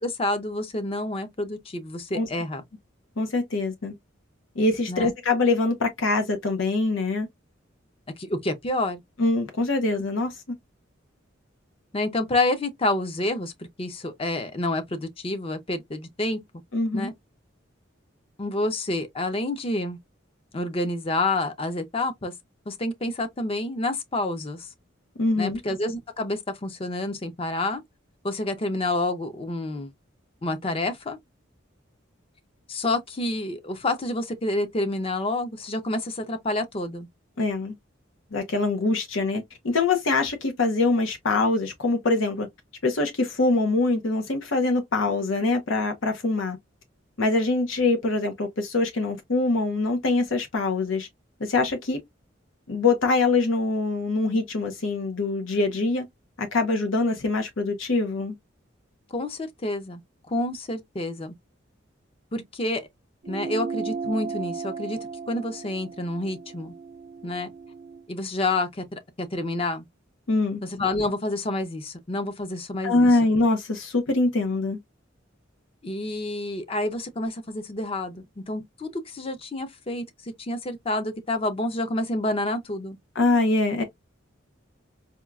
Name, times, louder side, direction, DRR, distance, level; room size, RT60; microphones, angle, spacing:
voice 1, 0.0-2.6 4.9-5.1 8.2-9.0 11.9-13.5 13.8-16.4 16.9-17.1 18.4-20.0 20.5-22.3 22.7-24.7 25.4-27.8 28.2-29.9 30.4-31.2 32.7-37.1 59.1-60.0 60.3-61.3 62.3-62.9 63.3-65.0 65.3-66.7 67.2-67.5 68.1-69.8 70.6-73.1 75.8-83.0, left 2 dB, 30° left, 0.5 m, -28 dB
voice 2, 3.2-3.9 4.6-7.3 9.2-10.4 16.7-17.1 25.2-25.6 37.4-37.7 38.3-42.5 42.8-46.6 47.2-51.1 51.4-52.0 52.7-56.0 56.4-58.3 70.3-70.6 72.8-74.8 83.1-83.8, left 3 dB, 85° left, 0.8 m, -24 dB
sound 1, 63.2-68.1, right 5 dB, 40° right, 0.4 m, -35 dB
4.4 x 2.3 x 2.3 m
head